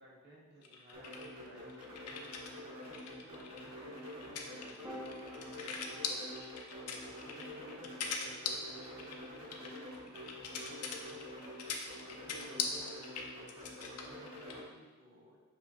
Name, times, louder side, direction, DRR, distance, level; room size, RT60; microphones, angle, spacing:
voice 1, 0.0-2.1 2.6-6.0 6.7-10.8 12.0-12.9 13.4-15.4, right 1 dB, 50° right, -4 dB, 1.1 m, -58 dB
sound 1, 0.6-2.5 2.8-14.6, left 5 dB, 85° left, 0.5 m, -42 dB
sound 2, 0.9-14.6, left 1 dB, 75° right, 1.2 m, -48 dB
Piano, 4.8-11.2, left 1 dB, 15° right, 0.6 m, -54 dB
5.8 x 2.9 x 2.5 m, 1.3 s
head